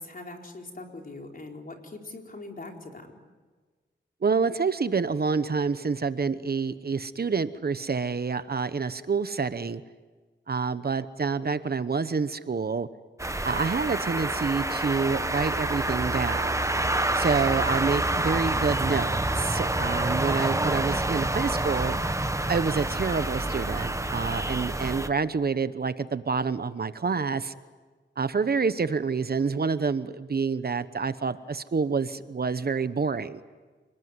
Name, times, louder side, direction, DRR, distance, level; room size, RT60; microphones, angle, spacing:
voice 1, 0.0-3.1, left 2 dB, 45° left, 2 dB, 4.4 m, -42 dB
voice 2, 4.2-9.8 10.5-12.9 13.4-16.6 17.1-22.0 22.5-27.5 28.2-33.4, right 5 dB, 55° right, 13 dB, 1.0 m, -28 dB
sound 1, 13.2-25.1, right 2 dB, 15° right, 1.2 m, -27 dB
30.0 x 20.0 x 9.7 m, 1.4 s
wide cardioid pair, 80°, 20 cm